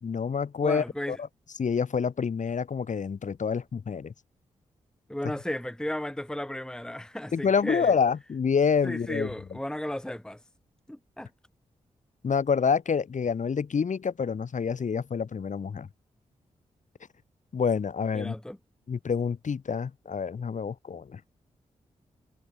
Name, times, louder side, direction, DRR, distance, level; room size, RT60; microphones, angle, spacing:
voice 1, 0.0-1.3 1.6-4.1 7.3-9.3 12.2-15.9 17.5-18.4 18.9-21.2, left 6 dB, 65° left, 4.0 m, -27 dB
voice 2, 0.6-1.2 5.1-7.9 8.8-10.4 10.9-11.3 18.1-18.6, left 1 dB, 5° left, 1.3 m, -34 dB
supercardioid pair, 40°, 14 cm